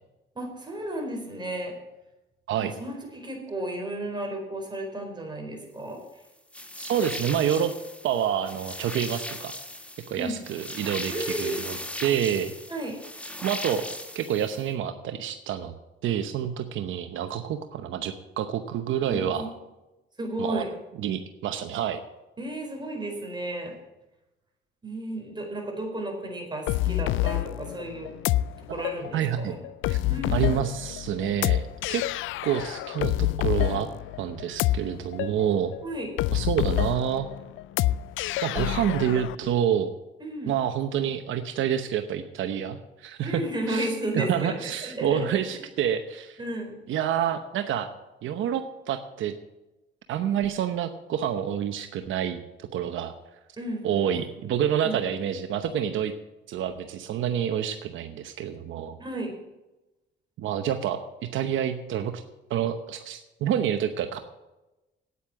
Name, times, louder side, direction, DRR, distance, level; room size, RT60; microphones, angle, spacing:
voice 1, 0.3-1.7 2.6-6.0 10.2-10.3 11.1-11.6 12.7-13.0 19.1-19.5 20.2-20.7 22.4-23.7 24.8-28.1 28.7-29.5 30.1-30.4 35.8-36.1 40.2-40.5 43.2-45.6 46.4-46.8 53.6-53.9 54.8-55.0 59.0-59.4, right 1 dB, 20° right, 1 dB, 4.5 m, -33 dB
sound 1, 6.5-14.7, left 1 dB, 5° left, 1.3 m, -38 dB
voice 2, 6.8-7.7 8.0-9.5 10.1-12.5 13.4-13.8 14.1-15.7 16.0-19.5 20.4-20.6 21.0-22.0 29.1-29.6 29.9-30.0 30.3-32.0 32.4-33.9 34.2-35.7 36.3-37.3 38.4-39.9 40.5-46.4 46.9-47.9 48.2-49.3 50.1-53.1 53.8-56.1 56.5-59.0 60.4-61.0 61.3-62.2 62.5-64.2, right 9 dB, 80° right, 8 dB, 0.9 m, -28 dB
sound 2, 26.7-39.4, left 15 dB, 80° left, 0.4 m, -28 dB
9.3 x 8.4 x 8.4 m, 1.0 s
cardioid pair, 90°, 20 cm